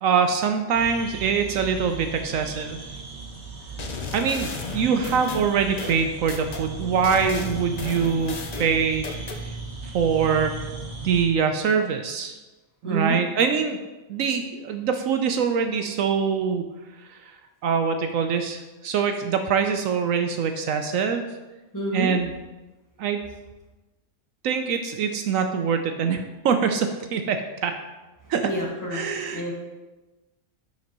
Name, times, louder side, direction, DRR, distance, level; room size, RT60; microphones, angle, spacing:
voice 1, 0.0-2.8 4.1-9.5 9.8-10.6 11.0-12.4 12.8-13.8 14.1-16.6 17.1-17.2 17.6-21.2 21.9-22.3 23.0-23.2 24.4-27.8 28.3-28.5 28.9-29.4, right 6 dB, 70° right, 6 dB, 1.0 m, -24 dB
sound 1, 0.7-11.3, right 3 dB, 55° right, 1.5 m, -37 dB
sound 2, 3.8-6.6 7.0-9.4, left 4 dB, 50° left, 0.5 m, -34 dB
voice 2, 12.8-13.2 21.7-22.1 28.4-29.0 29.3-29.5, right 2 dB, 15° left, -4 dB, 1.4 m, -28 dB
10.0 x 5.8 x 3.0 m, 1.1 s
omnidirectional pair, 1.5 m